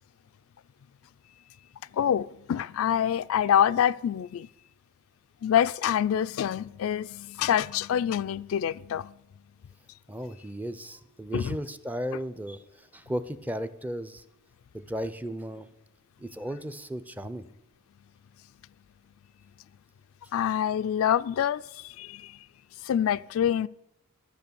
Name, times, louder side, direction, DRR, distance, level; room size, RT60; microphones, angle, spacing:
voice 1, 1.9-4.5 5.4-9.1 11.3-11.5 20.3-22.4 22.8-23.7, left 9 dB, 65° left, 0.3 m, -26 dB
voice 2, 10.1-14.2 14.7-15.7 16.2-17.5, equal, 10° right, 0.4 m, -35 dB
12.5 x 6.3 x 6.9 m
head